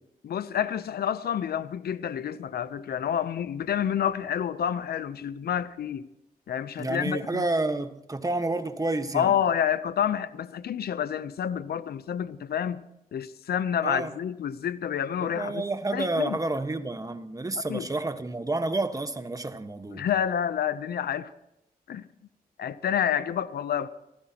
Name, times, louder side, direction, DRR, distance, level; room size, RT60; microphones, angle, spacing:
voice 1, 0.2-6.1 6.5-7.4 9.1-12.9 13.1-15.6 15.9-16.4 17.7-17.9 19.9-21.3 21.9-22.1 22.6-23.9, left 9 dB, 85° left, 0.6 m, -28 dB
voice 2, 6.8-9.3 13.8-14.1 15.2-20.0, right 2 dB, 20° right, 1.3 m, -30 dB
27.0 x 15.5 x 2.9 m
cardioid pair, 85°, 16 cm